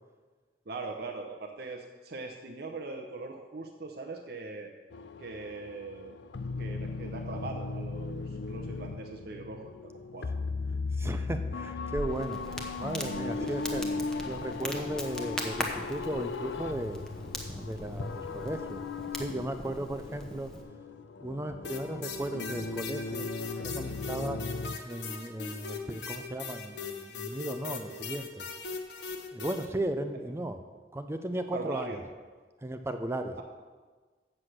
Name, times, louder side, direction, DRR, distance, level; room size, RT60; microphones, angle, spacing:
voice 1, 0.7-4.7 5.2-6.2 6.6-10.3 12.4-12.7 13.4-13.5 31.5-32.0, right 3 dB, 60° right, 2 dB, 0.8 m, -41 dB
sound 1, 4.9-24.8, left 3 dB, 90° left, 0.5 m, -37 dB
voice 2, 11.0-12.4 12.8-13.9 14.2-17.0 17.6-18.8 19.2-20.5 21.2-23.3 23.6-24.4 24.8-28.5 29.3-30.6 30.9-31.9 32.6-33.4, right 1 dB, 15° right, 8 dB, 0.5 m, -36 dB
Crackle, 11.9-20.6, equal, 5° left, 0.9 m, -40 dB
sound 2, 21.6-29.7, left 5 dB, 70° left, 1.1 m, -40 dB
7.8 x 7.6 x 6.5 m, 1.4 s
head